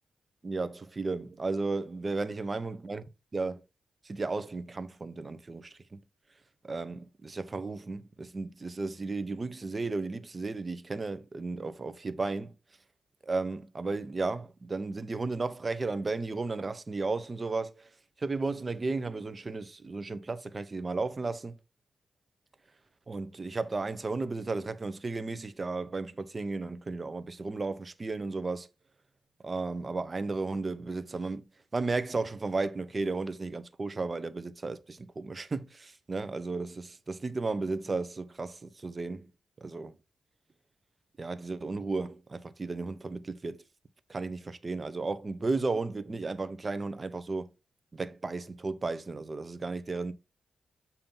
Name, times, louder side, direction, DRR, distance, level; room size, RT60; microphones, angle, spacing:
voice 1, 0.4-3.0 3.3-3.6 4.0-6.0 6.6-12.5 13.2-17.9 18.2-21.6 23.1-28.7 29.4-31.5 31.7-39.3 39.6-39.9 41.2-43.6 44.1-47.5 47.9-50.1, right 3 dB, 40° right, 0.7 m, -34 dB
7.0 x 2.8 x 5.4 m
cardioid pair, 65°, 0 cm